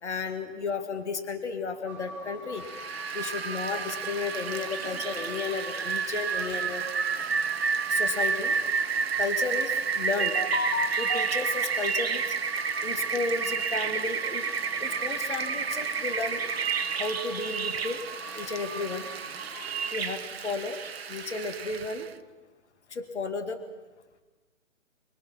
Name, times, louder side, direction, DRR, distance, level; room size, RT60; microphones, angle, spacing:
voice 1, 0.0-2.7 3.1-6.8 7.9-8.5 9.2-12.3 12.8-14.5 14.8-16.4 16.9-18.1 18.4-19.1 19.9-20.8 21.1-22.1 22.9-23.6, left 4 dB, 60° left, 7 dB, 2.2 m, -33 dB
sound 1, 1.9-19.9, right 3 dB, 5° right, 1.2 m, -42 dB
Rain, 2.6-22.1, right 6 dB, 50° right, 0.9 m, -30 dB
25.5 x 21.5 x 6.0 m, 1.2 s
figure-of-eight pair, 155°, 39 cm